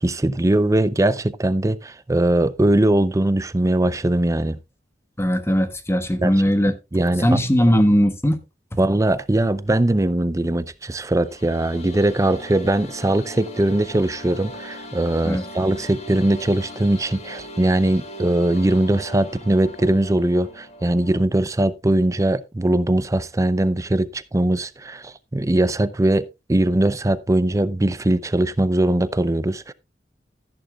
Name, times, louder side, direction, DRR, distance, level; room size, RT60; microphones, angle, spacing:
voice 1, 0.0-4.6 6.2-6.3 6.7-7.4 8.8-29.7, right 1 dB, 20° right, 0.5 m, -21 dB
voice 2, 5.2-6.7 7.2-8.4 15.2-15.4, equal, 15° left, 1.3 m, -18 dB
sound 1, 11.1-21.3, left 1 dB, 40° left, 1.8 m, -39 dB
14.0 x 10.5 x 2.3 m
head